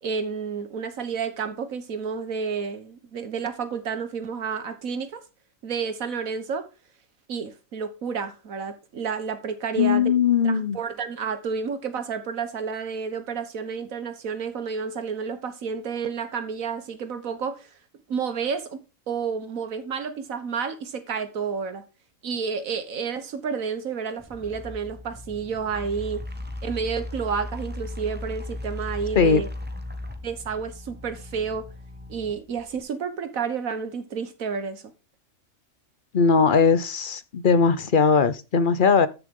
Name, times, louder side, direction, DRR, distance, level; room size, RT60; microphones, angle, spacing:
voice 1, 0.0-5.2 5.6-6.7 7.3-10.1 10.4-17.7 18.1-21.8 22.2-26.2 26.6-29.5 30.2-31.7 32.1-34.8, right 6 dB, 90° right, 1.7 m, -30 dB
voice 2, 9.8-10.8 29.1-29.4 36.1-39.1, left 5 dB, 45° left, 0.9 m, -19 dB
sound 1, 24.2-32.8, left 2 dB, 10° right, 0.8 m, -37 dB
13.0 x 7.0 x 3.7 m
omnidirectional pair, 1.4 m